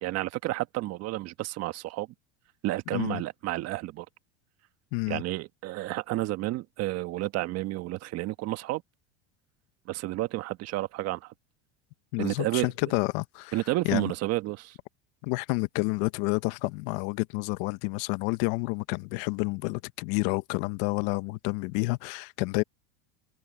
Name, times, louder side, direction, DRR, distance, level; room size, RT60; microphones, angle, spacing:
voice 1, 0.0-2.1 2.6-4.1 5.1-8.8 9.9-11.3 12.2-12.7 13.5-14.8, right 17 dB, 50° right, 1.5 m, -31 dB
voice 2, 2.9-3.2 4.9-5.2 12.1-13.6 13.8-14.1 15.2-22.6, left 24 dB, 65° left, 1.2 m, -29 dB
supercardioid pair, 115°, 31 cm